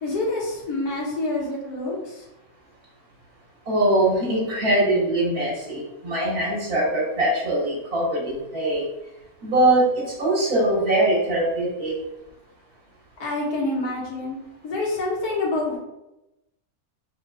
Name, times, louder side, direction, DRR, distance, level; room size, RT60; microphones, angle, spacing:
voice 1, 0.0-2.3 13.2-14.4 14.6-15.8, left 2 dB, 90° left, -4 dB, 1.8 m, -27 dB
voice 2, 3.7-8.8 9.4-11.9, right 1 dB, 85° right, -5 dB, 2.4 m, -22 dB
5.0 x 4.4 x 2.2 m, 0.92 s
omnidirectional pair, 1.5 m